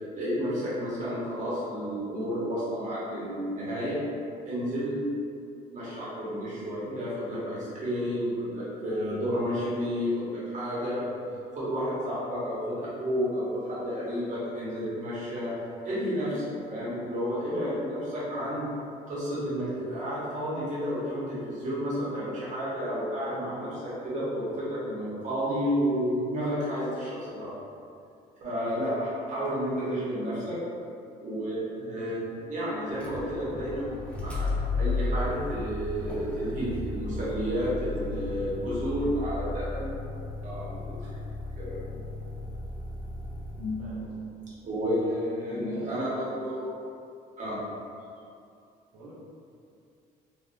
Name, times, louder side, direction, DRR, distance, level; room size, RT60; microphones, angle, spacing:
voice 1, 0.1-4.0 4.4-5.0 5.7-11.1 11.5-15.5 15.8-18.6 19.1-27.5 28.4-30.6 31.2-33.8 34.2-34.5 34.7-39.9 40.4-40.7 41.1-41.2 41.6-42.0 43.6-43.9 44.6-46.7 47.4-47.6, equal, 50° right, -9 dB, 1.1 m, -31 dB
Motor vehicle (road), 32.9-44.1, left 2 dB, 5° left, 0.7 m, -34 dB
voice 2, 37.7-38.6 39.3-39.5 43.8-44.2 45.0-46.0 48.9-49.1, right 1 dB, 85° right, -6 dB, 0.8 m, -47 dB
3.5 x 2.1 x 2.6 m, 2.5 s
cardioid pair, 110°, 17 cm